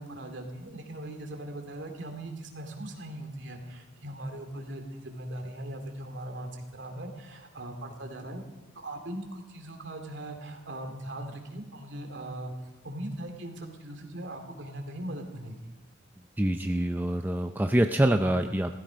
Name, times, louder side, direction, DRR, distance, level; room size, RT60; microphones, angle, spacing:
voice 1, 0.0-8.4 8.7-15.7, right 1 dB, 60° right, 4 dB, 2.5 m, -39 dB
voice 2, 16.4-18.7, right 1 dB, 10° right, 5 dB, 0.4 m, -25 dB
17.0 x 14.5 x 5.1 m, 1.1 s
head